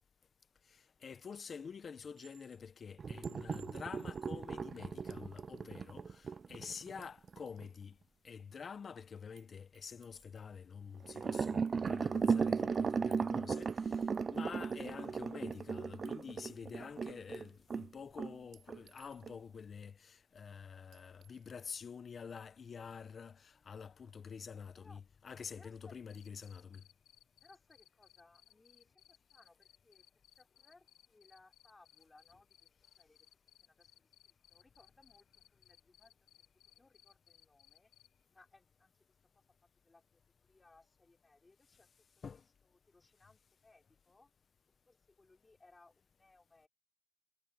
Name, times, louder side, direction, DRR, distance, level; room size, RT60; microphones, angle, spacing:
voice 1, 0.7-8.0 8.2-26.8 42.2-42.4, left 6 dB, 45° left, 0.9 m, -48 dB
Chink clink, 2.2-2.6 3.2-4.3 5.1-5.8 6.9-7.8 9.4-9.5 9.7-10.6 11.3-12.3 13.1-13.3 13.7-14.5 16.0-16.1 16.4-17.3 18.5-19.5 20.9-21.5, right 9 dB, 65° right, 7.1 m, -66 dB
sound 1, 3.0-7.7 11.0-17.9 18.2-18.4 18.7-18.8 19.2-19.3, right 5 dB, 40° right, 0.3 m, -36 dB
voice 2, 25.5-26.0 27.4-32.7 33.0-35.3 35.5-36.1 36.5-37.9 38.3-39.4 39.8-44.3 44.9-46.7, left 3 dB, 20° left, 3.7 m, -66 dB
Cricket, 26.1-38.1, left 12 dB, 85° left, 3.1 m, -64 dB
cardioid pair, 90°, 0 cm